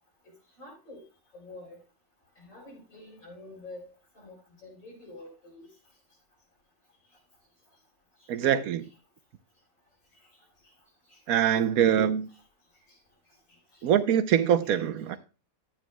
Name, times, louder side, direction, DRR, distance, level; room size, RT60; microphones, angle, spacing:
voice 1, 0.6-1.0 1.3-1.8 2.4-5.7 11.1-11.2 12.3-12.4 12.9-13.0 13.7-13.9 14.6-14.8, left 2 dB, 65° left, 5.0 m, -48 dB
voice 2, 8.3-8.9 11.3-12.3 13.8-15.2, right 9 dB, 80° right, 1.1 m, -24 dB
11.5 x 9.1 x 2.3 m
omnidirectional pair, 1.5 m